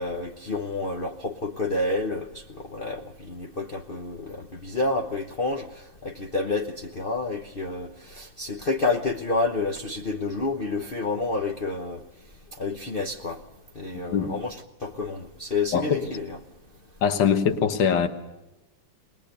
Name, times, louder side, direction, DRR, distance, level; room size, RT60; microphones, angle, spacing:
voice 1, 0.0-12.0 12.6-13.4 13.7-16.4, left 3 dB, 35° left, 1.0 m, -29 dB
voice 2, 15.7-16.1 17.0-18.1, left 7 dB, 70° left, 2.0 m, -22 dB
22.0 x 21.0 x 6.8 m
omnidirectional pair, 2.1 m